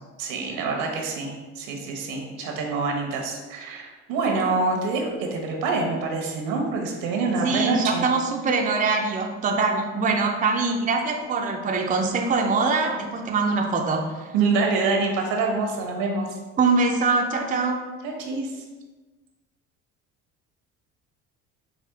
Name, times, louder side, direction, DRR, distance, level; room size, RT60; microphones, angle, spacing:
voice 1, 0.2-8.1 14.3-16.3 18.0-18.5, right 3 dB, 80° right, 1 dB, 1.0 m, -26 dB
voice 2, 7.4-14.2 16.6-17.8, right 4 dB, 25° right, 2 dB, 0.5 m, -23 dB
5.0 x 2.5 x 3.5 m, 1.2 s
supercardioid pair, 80°, 35 cm